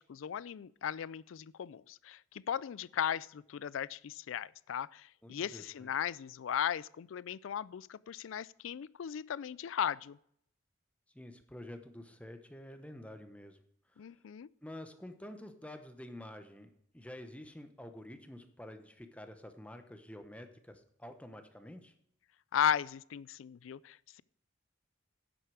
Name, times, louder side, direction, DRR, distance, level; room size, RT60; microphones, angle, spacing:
voice 1, 0.0-10.2 14.0-14.5 22.5-24.2, left 8 dB, 90° left, 0.4 m, -36 dB
voice 2, 5.2-5.9 11.1-13.6 13.9-14.1 14.6-21.9, left 1 dB, 5° left, 0.9 m, -49 dB
10.5 x 8.0 x 4.8 m
head